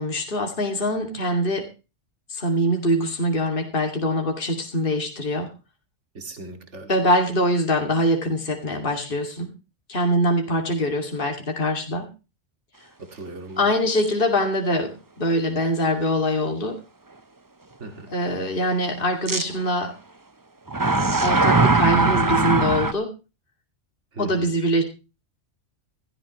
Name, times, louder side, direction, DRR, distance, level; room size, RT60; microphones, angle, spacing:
voice 1, 0.0-1.7 2.3-5.5 6.9-9.5 9.9-12.1 13.6-16.8 18.1-19.9 21.2-23.1 24.2-24.8, equal, 45° left, 3 dB, 2.6 m, -23 dB
voice 2, 6.1-6.9 13.1-13.7 17.8-18.1 24.1-24.5, right 2 dB, 70° right, 7 dB, 2.6 m, -38 dB
sound 1, 14.0-14.1 14.7-14.8 19.3-19.4 20.7-22.9, right 3 dB, 20° right, 0.8 m, -20 dB
16.5 x 15.0 x 3.1 m, 0.31 s
omnidirectional pair, 1.3 m